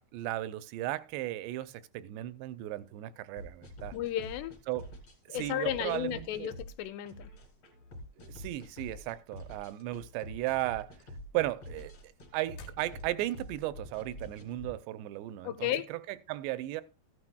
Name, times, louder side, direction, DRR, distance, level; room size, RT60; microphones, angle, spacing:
voice 1, 0.0-4.0 4.7-4.9 5.3-6.5 8.2-10.9 11.3-16.8, right 16 dB, 80° right, 2.7 m, -36 dB
sound 1, 3.4-14.8, left 1 dB, 40° left, 3.7 m, -47 dB
voice 2, 3.9-4.5 5.3-7.3 15.4-15.9, left 11 dB, 80° left, 2.8 m, -34 dB
sound 2, 8.2-9.5 9.8-10.3 10.6-13.4, left 2 dB, 65° left, 3.3 m, -56 dB
14.5 x 9.6 x 2.3 m
omnidirectional pair, 5.0 m